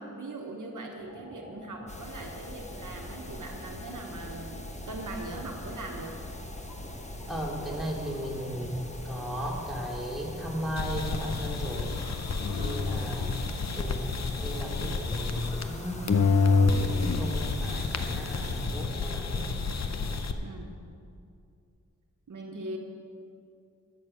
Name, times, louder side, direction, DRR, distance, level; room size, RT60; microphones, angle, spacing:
voice 1, 0.0-6.2 12.5-12.8 20.4-20.8 22.3-22.8, right 2 dB, 70° right, 1 dB, 1.3 m, -40 dB
sound 1, 1.0-20.2, left 1 dB, 85° left, 3.4 m, -48 dB
sound 2, 1.9-18.7, left 1 dB, 20° left, 1.1 m, -43 dB
voice 2, 7.3-12.0 12.6-13.3 13.8-19.5, equal, ahead, -4 dB, 2.7 m, -36 dB
sound 3, 10.8-15.8 16.1-20.3, left 4 dB, 55° left, 0.8 m, -28 dB
13.0 x 6.8 x 6.5 m, 2.5 s
wide cardioid pair, 70°, 32 cm